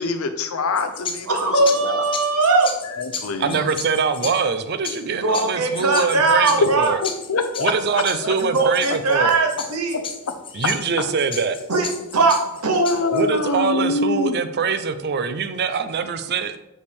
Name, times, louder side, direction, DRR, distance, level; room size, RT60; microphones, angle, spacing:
voice 1, 0.0-2.0 3.0-3.6 6.6-6.7 7.0-8.3 8.6-8.7 9.9-10.0 12.8-14.4, left 3 dB, 70° left, 8 dB, 0.7 m, -24 dB
sound 1, 0.8-13.3, left 6 dB, 25° left, 0.5 m, -35 dB
voice 2, 1.3-2.7 5.0-7.0 8.4-10.0 11.7-12.9, right 3 dB, 85° right, 3 dB, 1.0 m, -20 dB
voice 3, 3.4-7.0 7.6-9.3 10.5-11.6 13.1-16.6, right 5 dB, 50° right, 11 dB, 0.5 m, -23 dB
6.3 x 5.3 x 3.5 m, 0.93 s
head